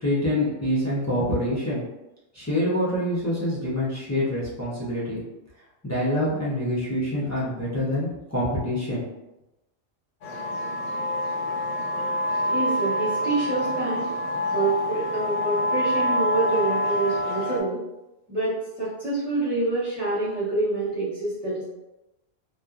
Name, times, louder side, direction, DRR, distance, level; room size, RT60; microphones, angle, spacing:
voice 1, 0.0-1.8 2.3-5.2 5.8-9.1, left 1 dB, 20° left, -8 dB, 0.4 m, -26 dB
sound 1, 10.2-17.6, left 1 dB, 65° left, 0.9 m, -26 dB
voice 2, 12.3-14.1 14.5-17.8 18.3-21.6, right 3 dB, ahead, -13 dB, 0.8 m, -27 dB
2.8 x 2.2 x 2.4 m, 0.98 s
omnidirectional pair, 1.3 m